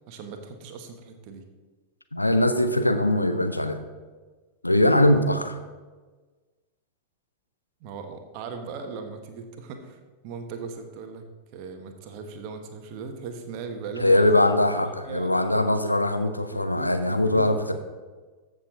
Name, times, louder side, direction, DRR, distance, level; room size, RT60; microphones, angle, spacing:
voice 1, 0.1-1.4 7.8-11.3 11.5-14.3 15.0-15.5 16.5-17.7, right 5 dB, 45° right, 6 dB, 1.4 m, -38 dB
voice 2, 2.1-3.8 4.6-5.6 14.0-17.7, left 1 dB, 85° left, 8 dB, 0.7 m, -21 dB
14.5 x 6.7 x 3.9 m, 1.4 s
figure-of-eight pair, 90°, 0 cm